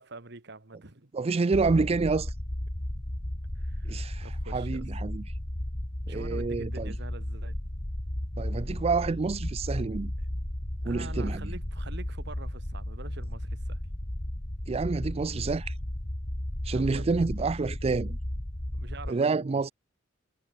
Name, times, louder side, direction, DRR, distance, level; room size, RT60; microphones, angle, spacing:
voice 1, 0.0-1.1 3.6-4.9 6.1-7.6 10.8-13.8 16.7-17.1 18.8-19.7, right 2 dB, 60° right, 2.2 m, -45 dB
voice 2, 1.1-2.3 3.9-5.2 6.1-6.9 8.4-10.1 10.8-11.5 14.7-15.7 16.6-18.2 19.1-19.7, right 4 dB, 30° right, 0.4 m, -28 dB
sound 1, 1.5-19.1, left 1 dB, 35° left, 1.9 m, -34 dB
head